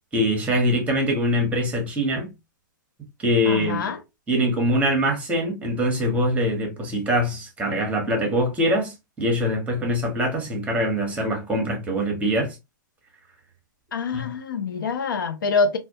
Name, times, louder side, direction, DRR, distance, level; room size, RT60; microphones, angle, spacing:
voice 1, 0.1-2.3 3.2-3.9 4.3-12.6 14.1-14.3, equal, 10° right, 0.9 m, -23 dB
voice 2, 3.5-4.0 13.9-15.8, left 4 dB, 85° left, 0.5 m, -25 dB
2.2 x 2.1 x 2.6 m
hypercardioid pair, 130°, 11 cm